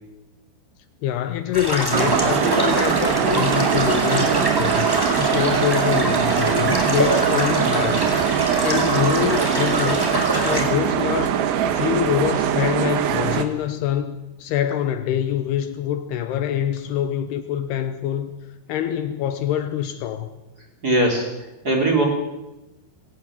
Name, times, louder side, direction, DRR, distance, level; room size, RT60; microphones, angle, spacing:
voice 1, 1.0-4.9 5.2-8.1 8.6-10.1 10.4-11.4 11.7-18.3 18.7-20.3, left 10 dB, 75° left, 10 dB, 2.6 m, -25 dB
sound 1, 1.5-10.7, equal, 5° right, 2.6 m, -25 dB
sound 2, 1.9-13.5, right 9 dB, 85° right, 3.7 m, -22 dB
voice 2, 20.8-21.3 21.6-22.0, right 1 dB, 25° right, 1 dB, 3.4 m, -19 dB
20.0 x 17.5 x 7.3 m, 0.99 s
omnidirectional pair, 5.2 m